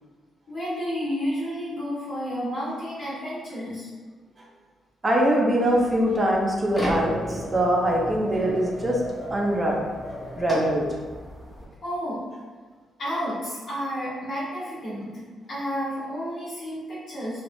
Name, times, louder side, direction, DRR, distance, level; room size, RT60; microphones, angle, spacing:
voice 1, 0.5-3.9 11.8-12.2 13.0-15.2 15.5-17.4, equal, 65° left, -12 dB, 1.4 m, -31 dB
voice 2, 5.0-9.0 9.3-9.8 10.4-10.8, right 1 dB, 25° right, -2 dB, 0.6 m, -22 dB
sound 1, 5.6-11.6, equal, 10° left, 0.8 m, -35 dB
3.4 x 2.4 x 2.6 m, 1.4 s
cardioid pair, 125°, 0 cm